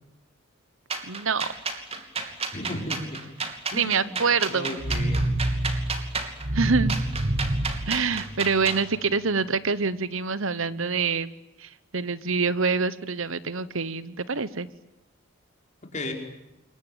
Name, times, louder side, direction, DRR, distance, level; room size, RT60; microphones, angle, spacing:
sound 1, 0.9-8.8, right 4 dB, 30° right, 2.9 m, -32 dB
voice 1, 1.0-1.5 3.7-4.8 6.5-7.0 7.9-11.3 11.6-14.7, right 5 dB, 70° right, 16 dB, 1.1 m, -26 dB
voice 2, 2.5-3.2 3.7-4.2 4.5-5.2 15.9-16.1, left 1 dB, 35° left, 3 dB, 5.4 m, -34 dB
sound 2, 4.8-8.8, right 1 dB, 45° right, 1.7 m, -27 dB
28.5 x 23.0 x 9.1 m, 0.93 s
head